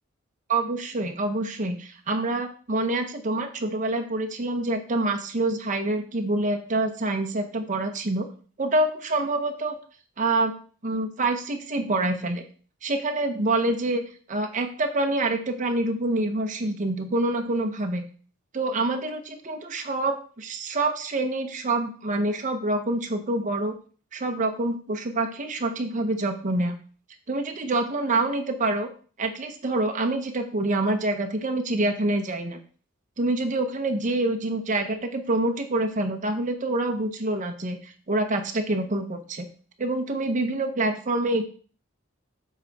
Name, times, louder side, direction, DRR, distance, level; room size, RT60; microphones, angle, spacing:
voice 1, 0.5-8.3 8.6-9.8 10.2-10.5 10.8-12.4 12.8-14.0 14.3-18.0 18.5-23.7 24.1-26.8 27.3-28.9 29.2-32.6 33.2-39.5 39.8-41.4, right 2 dB, 40° right, 5 dB, 0.8 m, -26 dB
7.4 x 3.4 x 4.0 m, 0.41 s
head